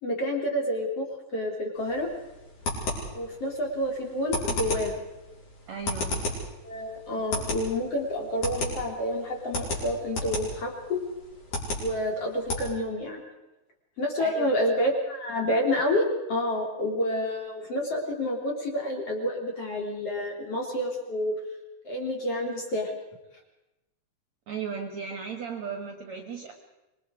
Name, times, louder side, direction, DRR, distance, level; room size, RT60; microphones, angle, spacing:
voice 1, 0.0-1.0 1.3-2.1 3.1-4.9 6.6-11.0 11.8-13.2 14.0-21.4 21.8-22.9, left 1 dB, 40° left, 0 dB, 3.5 m, -29 dB
sound 1, 1.8-12.6, left 2 dB, 55° left, 6.4 m, -34 dB
voice 2, 5.7-6.3 14.2-14.5 24.5-26.5, right 6 dB, 55° right, 4 dB, 2.1 m, -36 dB
25.5 x 22.0 x 4.9 m, 1.0 s
omnidirectional pair, 4.8 m